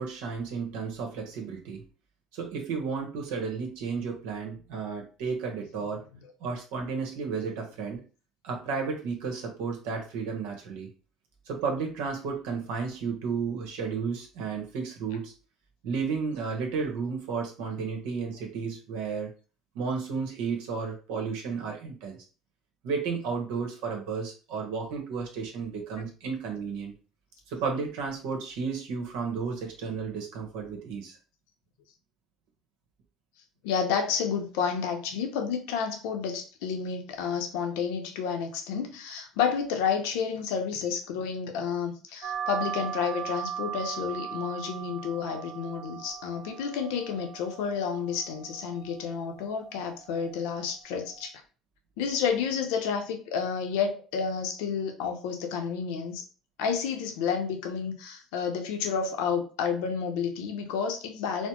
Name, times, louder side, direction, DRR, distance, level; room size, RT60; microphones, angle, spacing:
voice 1, 0.0-1.8 2.3-6.0 6.4-8.0 8.4-10.9 11.5-15.3 15.8-19.3 19.7-22.1 22.8-26.9 27.5-31.2, right 5 dB, 90° right, 2 dB, 1.0 m, -33 dB
voice 2, 33.6-51.3 52.0-56.2 56.6-61.5, left 6 dB, 90° left, 5 dB, 0.7 m, -30 dB
sound 1, 42.2-51.3, right 9 dB, 65° right, 0.4 m, -39 dB
4.2 x 2.1 x 2.9 m, 0.36 s
cardioid pair, 110°, 0 cm